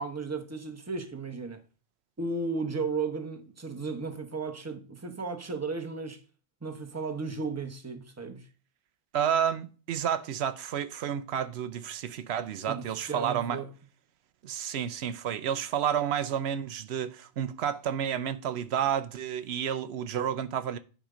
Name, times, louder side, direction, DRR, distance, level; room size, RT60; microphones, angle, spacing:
voice 1, 0.0-1.6 2.2-6.2 6.6-8.5 12.7-13.7, right 4 dB, 15° right, 1.0 m, -34 dB
voice 2, 9.1-13.6 14.4-20.8, right 9 dB, 85° right, 0.9 m, -30 dB
8.9 x 5.1 x 5.0 m
omnidirectional pair, 1.1 m